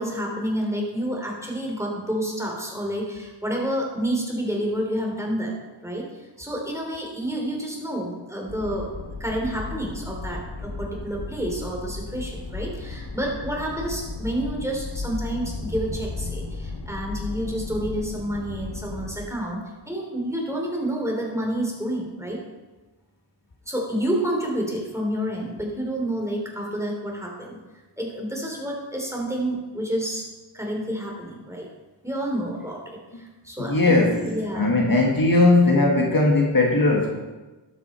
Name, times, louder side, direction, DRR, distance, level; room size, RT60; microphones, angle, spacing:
voice 1, 0.0-5.5 5.8-8.9 9.2-19.6 19.9-22.4 23.7-27.6 28.0-30.3 30.5-31.7 32.0-32.8 33.1-34.7, right 1 dB, 5° right, -1 dB, 3.3 m, -29 dB
sound 1, 8.5-19.4, left 3 dB, 85° left, 2.1 m, -35 dB
voice 2, 33.6-34.3 34.5-37.1, left 2 dB, 50° left, -1 dB, 1.8 m, -18 dB
12.0 x 8.3 x 4.4 m, 1.2 s
wide cardioid pair, 50°, 43 cm